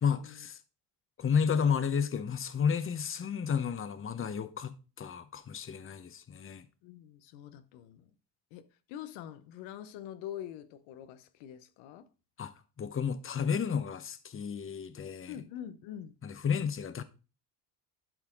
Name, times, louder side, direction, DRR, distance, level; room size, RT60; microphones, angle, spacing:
voice 1, 0.0-0.6 1.2-6.6 12.4-12.5 12.8-15.3 16.2-17.0, left 7 dB, 25° left, 0.9 m, -32 dB
voice 2, 6.8-8.1 8.5-8.6 8.9-12.1 15.2-16.2, left 10 dB, 85° left, 0.9 m, -45 dB
12.0 x 4.4 x 3.7 m
supercardioid pair, 95°, 46 cm